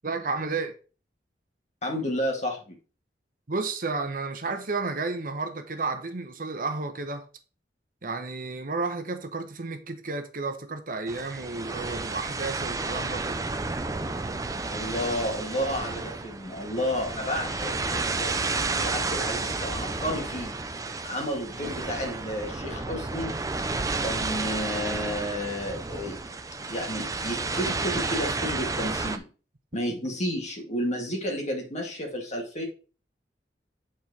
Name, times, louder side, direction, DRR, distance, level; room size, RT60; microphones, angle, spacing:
voice 1, 0.0-0.7 3.5-7.2 8.0-13.5 21.6-21.7, right 3 dB, 50° right, 0.9 m, -32 dB
voice 2, 1.8-2.8 14.7-20.6 21.0-23.3 24.0-26.3 26.7-29.3 29.7-32.7, equal, 40° left, 2.0 m, -31 dB
sound 1, 11.1-29.2, right 3 dB, 20° right, 0.5 m, -31 dB
7.9 x 4.4 x 4.7 m
head